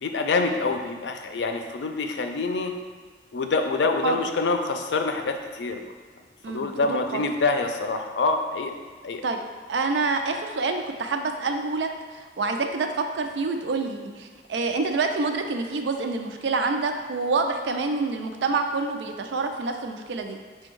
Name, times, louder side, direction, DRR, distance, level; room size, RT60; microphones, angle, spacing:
voice 1, 0.0-2.7 3.3-5.8 6.5-8.7 9.0-9.2, left 3 dB, 75° left, 5 dB, 0.4 m, -26 dB
voice 2, 6.4-7.2 9.2-9.4 9.7-20.4, right 3 dB, 85° right, 5 dB, 0.4 m, -27 dB
5.2 x 2.2 x 4.5 m, 1.5 s
head